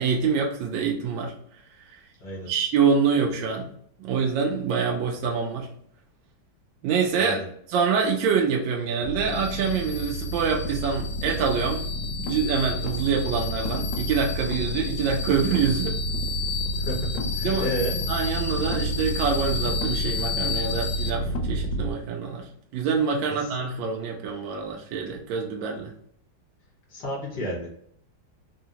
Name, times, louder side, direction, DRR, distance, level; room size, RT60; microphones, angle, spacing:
voice 1, 0.0-1.3 1.9-2.0 2.5-3.7 4.0-5.7 6.8-7.4 7.7-11.9 12.1-16.0 17.4-17.7 18.1-25.9, right 6 dB, 75° right, 0 dB, 1.2 m, -25 dB
voice 2, 7.2-7.5 16.8-17.0 17.3-18.0 23.3-23.5 26.9-27.7, right 1 dB, 60° left, -3 dB, 1.5 m, -31 dB
sound 1, 9.0-21.9, left 1 dB, 75° left, 1.3 m, -29 dB
3.7 x 2.1 x 2.8 m, 0.69 s
omnidirectional pair, 2.3 m